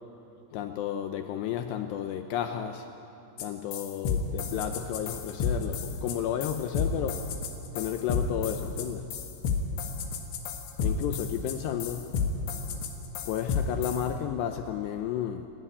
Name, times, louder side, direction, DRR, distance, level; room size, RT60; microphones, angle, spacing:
voice 1, 0.5-2.9 3.4-7.3 7.7-9.1 10.8-12.1 13.3-15.5, left 10 dB, 85° left, 6 dB, 2.5 m, -32 dB
sound 1, 3.4-3.5 3.7-14.0, left 6 dB, 65° left, 3.5 m, -31 dB
29.0 x 12.5 x 9.8 m, 2.7 s
omnidirectional pair, 5.8 m